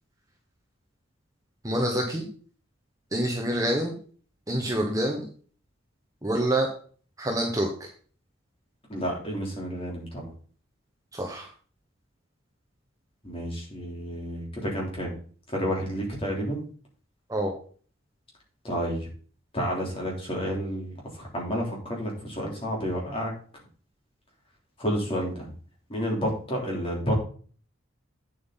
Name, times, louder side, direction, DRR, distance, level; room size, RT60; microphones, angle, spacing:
voice 1, 1.6-2.3 3.1-4.0 4.5-5.3 6.2-6.7 7.2-7.9 11.1-11.5 17.3-17.5, right 1 dB, 15° right, 1 dB, 1.3 m, -26 dB
voice 2, 8.9-10.3 13.2-15.1 15.5-16.6 18.6-19.1 19.5-23.3 24.8-25.5 25.9-27.1, equal, 25° left, -2 dB, 3.5 m, -30 dB
8.7 x 7.7 x 4.0 m, 0.42 s
head